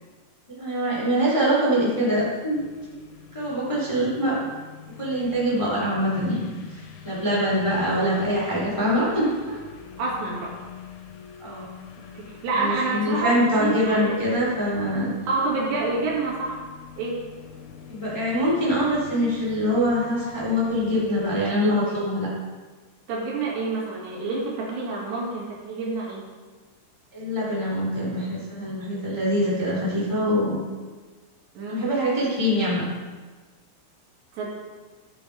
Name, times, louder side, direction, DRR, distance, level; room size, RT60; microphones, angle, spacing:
voice 1, 0.6-2.6 3.3-4.4 5.0-6.4 6.7-6.8 7.0-9.6 11.4-11.7 12.5-15.1 17.9-22.3 27.1-30.6 31.7-32.8, equal, 10° left, -7 dB, 2.7 m, -24 dB
sound 1, 2.5-21.5, left 7 dB, 90° left, 3.4 m, -45 dB
voice 2, 10.0-10.5 12.2-13.3 13.6-14.2 15.3-16.6 17.0-17.3 23.1-26.3 31.6-31.9 34.3-34.5, right 3 dB, 70° right, -5 dB, 4.3 m, -28 dB
15.0 x 7.4 x 3.5 m, 1.3 s
omnidirectional pair, 5.1 m